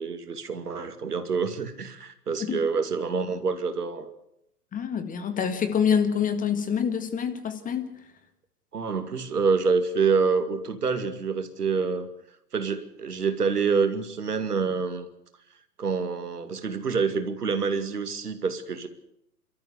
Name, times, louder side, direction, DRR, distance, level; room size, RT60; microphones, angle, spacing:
voice 1, 0.0-4.1 8.7-12.1 12.5-15.1 15.8-18.9, right 5 dB, 80° right, 8 dB, 2.5 m, -27 dB
voice 2, 4.7-8.0, left 7 dB, 15° left, 9 dB, 1.8 m, -26 dB
28.0 x 13.5 x 8.2 m, 0.77 s
figure-of-eight pair, 115°, 46 cm